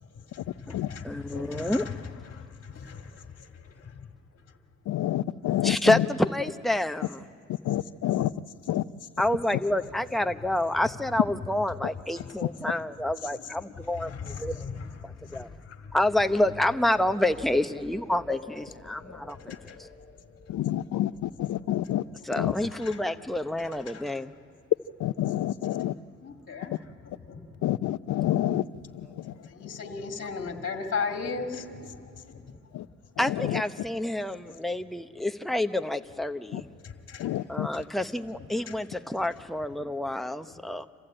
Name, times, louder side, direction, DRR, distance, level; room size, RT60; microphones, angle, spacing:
voice 1, 0.1-4.1 9.7-9.8 12.2-12.9 13.2-13.5 13.8-16.0 18.3-18.5 18.8-20.6 22.3-23.0 23.6-24.2 26.2-27.5 29.3-32.5 34.5-34.6 36.8-37.4 37.7-37.9 38.7-38.8 40.5-40.6, left 5 dB, 45° left, 2.0 m, -39 dB
voice 2, 1.0-1.9 5.6-7.2 9.2-14.7 15.0-15.5 15.9-19.9 22.2-24.3 28.2-28.5 33.2-36.7 37.5-40.9, left 1 dB, ahead, 0.8 m, -28 dB
voice 3, 4.9-6.1 7.6-8.3 8.7-8.8 20.5-22.0 22.4-22.5 25.0-25.9 27.6-28.7 28.9-29.3 32.7-32.9 33.3-33.6 36.5-36.6 37.2-37.7, left 13 dB, 75° left, 0.6 m, -28 dB
27.0 x 15.5 x 8.8 m
cardioid pair, 90°, 30 cm